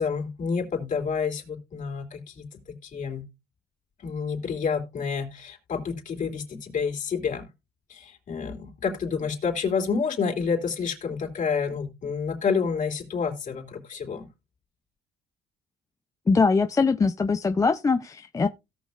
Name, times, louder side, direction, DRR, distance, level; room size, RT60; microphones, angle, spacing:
voice 1, 0.0-3.2 4.0-7.5 7.9-14.3, left 5 dB, 50° left, 3.3 m, -29 dB
voice 2, 16.3-18.5, left 4 dB, 20° left, 0.5 m, -22 dB
17.0 x 6.2 x 2.4 m
cardioid pair, 110°, 17 cm